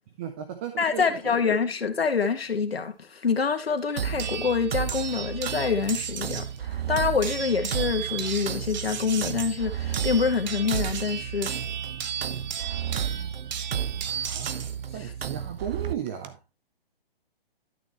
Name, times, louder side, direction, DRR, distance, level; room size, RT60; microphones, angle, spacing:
voice 1, 0.2-1.4 14.0-16.4, right 9 dB, 15° right, 0.4 m, -36 dB
voice 2, 0.8-11.5, left 5 dB, 90° left, 1.8 m, -26 dB
sound 1, 4.0-15.9, right 8 dB, 80° right, 0.8 m, -33 dB
sound 2, 4.2-6.6 7.2-14.7 15.8-16.3, right 8 dB, 50° right, 1.1 m, -35 dB
12.0 x 6.4 x 3.0 m
hypercardioid pair, 145°, 29 cm